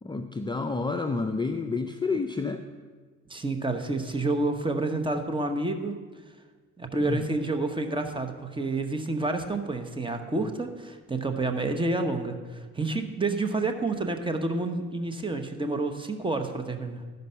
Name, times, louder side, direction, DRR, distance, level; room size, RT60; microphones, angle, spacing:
voice 1, 0.0-2.6 7.0-7.3, left 4 dB, 15° left, 5 dB, 0.4 m, -29 dB
voice 2, 3.3-6.0 6.8-17.0, right 2 dB, 15° right, 6 dB, 0.9 m, -29 dB
12.0 x 5.3 x 5.6 m, 1.4 s
cardioid pair, 90°, 30 cm